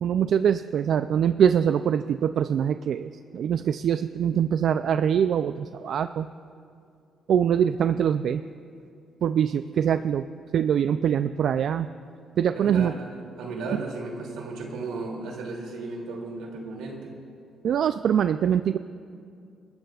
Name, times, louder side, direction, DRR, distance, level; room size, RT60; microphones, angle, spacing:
voice 1, 0.0-6.3 7.3-8.4 9.2-10.3 10.5-11.9 12.4-12.9 13.7-13.8 17.6-18.8, right 8 dB, 65° right, 11 dB, 0.3 m, -23 dB
voice 2, 12.6-17.2, right 3 dB, 90° right, 0 dB, 2.6 m, -35 dB
29.5 x 13.5 x 2.4 m, 2.4 s
cardioid pair, 90°, 0 cm